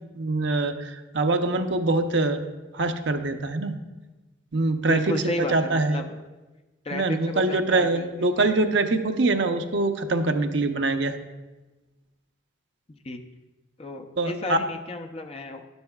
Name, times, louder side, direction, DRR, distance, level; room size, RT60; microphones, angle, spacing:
voice 1, 0.1-2.4 2.7-3.8 4.5-5.0 5.5-6.0 6.9-11.2 14.2-14.6, right 2 dB, 70° right, 6 dB, 0.7 m, -24 dB
voice 2, 4.9-6.1 6.8-8.5 12.9-13.2 13.8-15.6, left 1 dB, 30° left, 5 dB, 0.6 m, -33 dB
12.5 x 10.5 x 2.3 m, 1.1 s
head